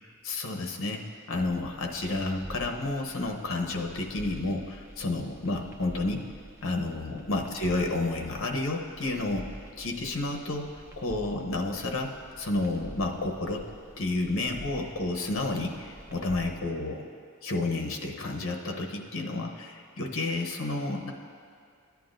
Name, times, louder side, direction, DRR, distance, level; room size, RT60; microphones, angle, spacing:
voice 1, 0.2-6.3 6.6-10.7 11.0-13.7 14.0-17.1 17.4-21.1, left 2 dB, 65° left, 2 dB, 0.9 m, -31 dB
sound 1, 1.4-16.5, equal, 10° right, 0.6 m, -48 dB
14.0 x 9.3 x 2.6 m, 2.2 s
head